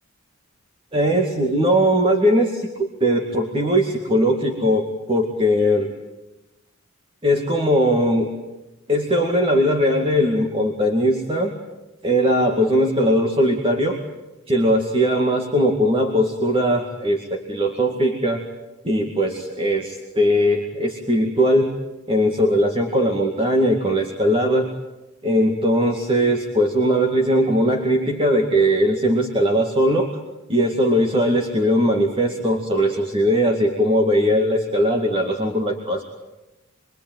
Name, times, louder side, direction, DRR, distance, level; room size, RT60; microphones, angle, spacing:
voice 1, 0.9-5.9 7.2-8.3 8.9-11.5 12.0-14.0 14.5-18.5 18.8-21.8 22.1-24.7 25.2-30.1 30.5-36.0, equal, 25° right, 2 dB, 2.3 m, -19 dB
27.0 x 24.0 x 9.3 m, 1.0 s
head